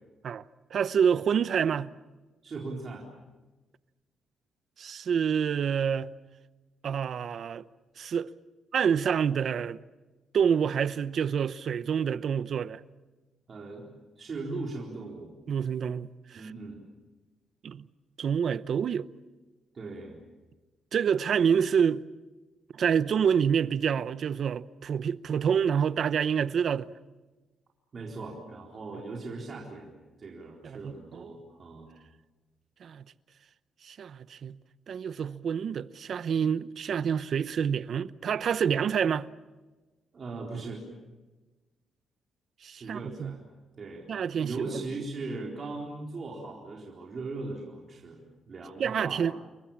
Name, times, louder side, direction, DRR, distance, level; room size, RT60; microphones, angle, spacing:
voice 1, 0.7-1.9 4.8-6.1 6.8-7.6 8.0-8.3 8.7-9.8 10.3-12.8 15.5-16.4 17.6-17.9 18.2-19.1 20.9-22.0 22.7-26.9 30.6-31.2 32.8-33.0 33.8-34.6 34.9-39.3 42.6-43.3 44.1-44.7 48.8-49.3, right 7 dB, 55° right, 0.7 m, -27 dB
voice 2, 2.4-3.0 13.5-13.9 14.2-15.3 16.3-16.8 19.7-20.2 27.9-29.9 30.2-32.0 40.1-40.8 42.7-43.4 43.8-44.1 44.4-48.2 48.5-49.3, right 3 dB, 40° right, 4.1 m, -39 dB
29.0 x 23.0 x 7.2 m
cardioid pair, 145°, 0 cm